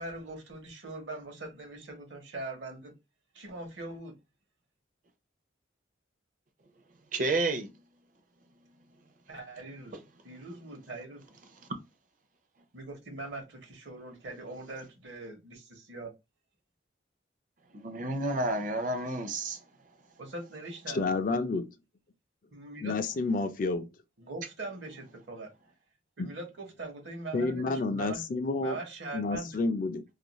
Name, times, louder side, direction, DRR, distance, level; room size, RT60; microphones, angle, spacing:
voice 1, 0.0-2.9 3.3-4.1 9.3-11.2 12.7-16.1 20.2-21.1 22.5-23.0 24.2-25.5 26.2-28.2 28.6-29.6, right 2 dB, 65° right, 0.9 m, -42 dB
voice 2, 7.1-7.7 17.7-19.6, right 2 dB, 45° right, 0.5 m, -30 dB
voice 3, 20.9-21.7 22.8-23.9 26.2-26.3 27.3-28.8 29.1-30.0, left 3 dB, 45° left, 0.3 m, -30 dB
2.4 x 2.2 x 2.9 m
head